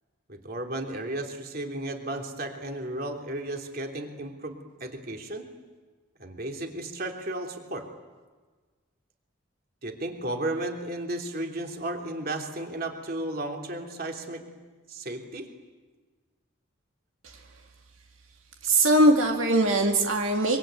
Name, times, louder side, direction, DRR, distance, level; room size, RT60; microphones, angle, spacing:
voice 1, 0.3-4.5 4.8-5.5 6.2-7.9 9.8-14.4 14.9-15.5, right 1 dB, 45° right, 3 dB, 3.2 m, -34 dB
voice 2, 18.6-20.6, right 1 dB, 80° right, 3 dB, 2.3 m, -21 dB
25.0 x 24.5 x 9.1 m, 1.4 s
head